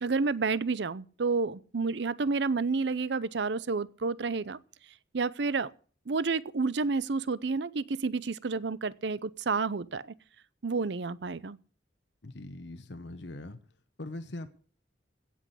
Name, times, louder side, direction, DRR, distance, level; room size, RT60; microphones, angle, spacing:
voice 1, 0.0-4.6 5.1-5.7 6.1-10.1 10.6-11.6, right 4 dB, 65° right, 0.6 m, -30 dB
voice 2, 12.2-13.6 14.0-14.5, left 2 dB, 70° left, 1.0 m, -41 dB
16.5 x 6.1 x 8.3 m
head